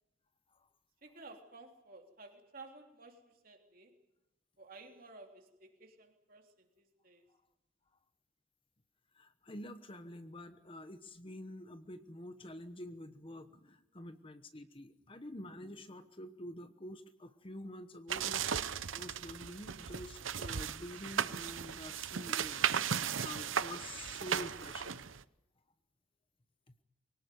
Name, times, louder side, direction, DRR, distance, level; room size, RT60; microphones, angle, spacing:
voice 1, 1.0-3.9 4.6-7.3, right 3 dB, 45° right, 3 dB, 3.4 m, -54 dB
voice 2, 9.1-22.7 23.2-25.1 26.7-26.8, left 1 dB, 25° left, 9 dB, 1.1 m, -48 dB
sound 1, 18.1-25.2, right 8 dB, 85° right, 0.8 m, -36 dB
24.0 x 18.5 x 9.4 m, 0.92 s
head